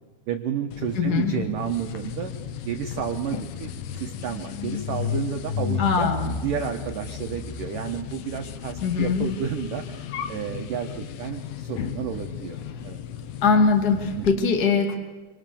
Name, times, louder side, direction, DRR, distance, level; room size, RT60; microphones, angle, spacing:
voice 1, 0.3-6.1 6.4-12.6 12.8-13.0 14.2-14.3, right 8 dB, 75° right, 5 dB, 1.9 m, -31 dB
sound 1, 0.7-14.4, left 8 dB, 75° left, 2.2 m, -34 dB
voice 2, 1.0-1.3 5.8-6.3 8.8-9.3 13.4-14.9, left 5 dB, 35° left, 3 dB, 1.6 m, -21 dB
28.0 x 26.0 x 7.0 m, 1.2 s
omnidirectional pair, 5.7 m